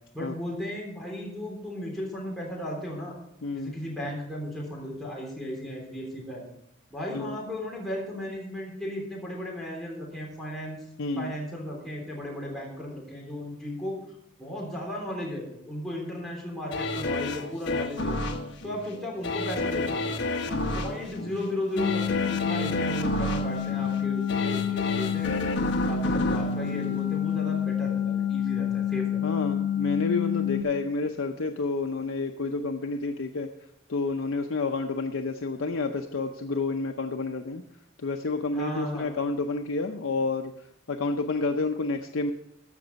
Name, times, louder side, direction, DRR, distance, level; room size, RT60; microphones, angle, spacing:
voice 1, 0.1-3.2 3.5-6.4 6.9-10.8 11.2-13.9 14.4-18.2 18.6-20.0 20.4-25.3 25.8-29.4 38.5-39.1, left 1 dB, ahead, -4 dB, 3.4 m, -35 dB
voice 2, 3.4-3.7 7.1-7.4 11.0-11.3 29.2-33.5 33.9-37.6 38.0-42.3, left 3 dB, 90° left, 4 dB, 0.7 m, -29 dB
sound 1, 16.7-27.7 28.1-28.2, left 2 dB, 65° left, 1.1 m, -31 dB
sound 2, 21.8-30.6, left 7 dB, 25° left, 1.2 m, -28 dB
14.5 x 6.0 x 5.2 m, 0.78 s
head